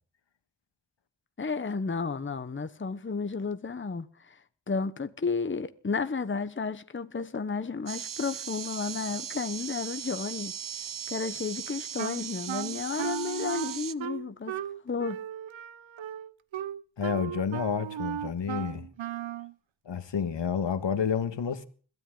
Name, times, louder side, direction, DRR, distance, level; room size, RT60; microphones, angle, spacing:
voice 1, 1.4-4.4 4.7-10.5 11.1-15.2, left 4 dB, 25° left, 1.0 m, -32 dB
sound 1, 7.9-13.9, right 8 dB, 45° right, 0.7 m, -38 dB
Wind instrument woodwind instrument, 12.0-19.5, right 10 dB, 85° right, 0.8 m, -36 dB
voice 2, 17.0-18.9 19.8-21.7, left 7 dB, 70° left, 1.7 m, -30 dB
21.5 x 13.5 x 3.9 m
wide cardioid pair, 75°, 45 cm